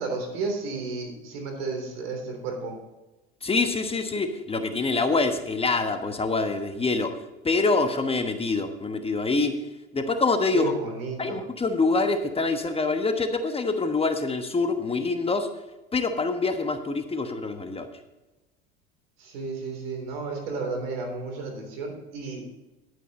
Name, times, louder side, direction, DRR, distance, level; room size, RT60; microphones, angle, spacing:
voice 1, 0.0-2.8 10.5-11.4 19.2-22.4, right 3 dB, 75° right, 4 dB, 3.5 m, -32 dB
voice 2, 3.4-7.1 7.4-9.6 9.9-10.7 11.2-15.5 15.9-17.9, left 3 dB, 20° left, 7 dB, 1.2 m, -25 dB
11.0 x 9.4 x 4.2 m, 1.1 s
hypercardioid pair, 85°, 30 cm